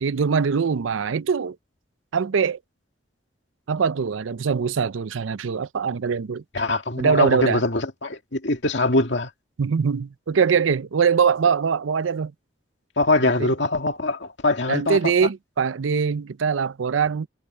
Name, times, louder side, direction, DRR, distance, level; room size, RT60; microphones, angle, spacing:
voice 1, 0.0-1.6 2.1-2.6 3.7-6.4 7.0-7.6 9.6-12.3 13.4-13.5 14.7-17.3, right 6 dB, 85° right, 0.5 m, -22 dB
voice 2, 6.5-9.3 13.0-15.3, left 2 dB, 65° left, 2.3 m, -23 dB
head